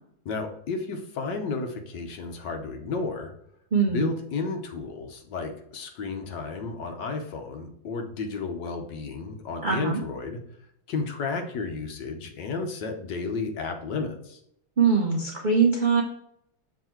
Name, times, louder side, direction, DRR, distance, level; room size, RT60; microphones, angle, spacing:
voice 1, 0.2-3.3 3.9-10.4 10.9-14.4, left 4 dB, 65° left, 4 dB, 1.4 m, -32 dB
voice 2, 3.7-4.1 9.6-10.0 14.8-16.0, right 5 dB, 65° right, -1 dB, 0.4 m, -22 dB
7.2 x 3.3 x 4.5 m, 0.73 s
omnidirectional pair, 2.2 m